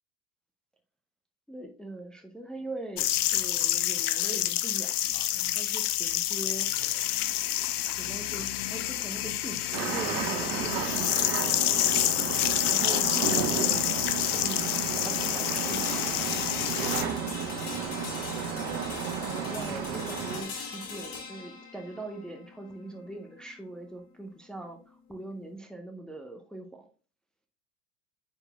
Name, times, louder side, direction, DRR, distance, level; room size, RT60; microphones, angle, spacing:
voice 1, 1.5-6.9 7.9-11.4 12.7-13.9 14.4-16.8 19.2-26.9, right 2 dB, ahead, 4 dB, 0.6 m, -42 dB
sound 1, 3.0-17.0, left 14 dB, 65° left, 0.6 m, -28 dB
sound 2, 9.7-20.4, right 7 dB, 45° right, 1.3 m, -33 dB
sound 3, 15.6-25.5, left 5 dB, 45° left, 2.2 m, -41 dB
9.7 x 4.2 x 2.3 m, 0.36 s
figure-of-eight pair, 80°, 48 cm